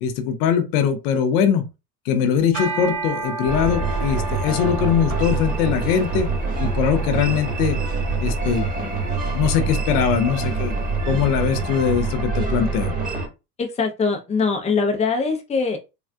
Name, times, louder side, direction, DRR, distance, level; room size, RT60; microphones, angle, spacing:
voice 1, 0.0-1.6 2.1-6.3 6.6-7.8 8.2-9.0 9.3-10.7 11.1-13.0, left 7 dB, 65° left, 0.7 m, -21 dB
sound 1, 2.4-11.7, right 4 dB, 70° right, 1.4 m, -35 dB
sound 2, 3.5-13.3, right 4 dB, 15° right, 1.4 m, -25 dB
voice 2, 13.6-15.8, left 4 dB, 15° left, 0.6 m, -22 dB
3.5 x 2.4 x 2.3 m
hypercardioid pair, 75°, 49 cm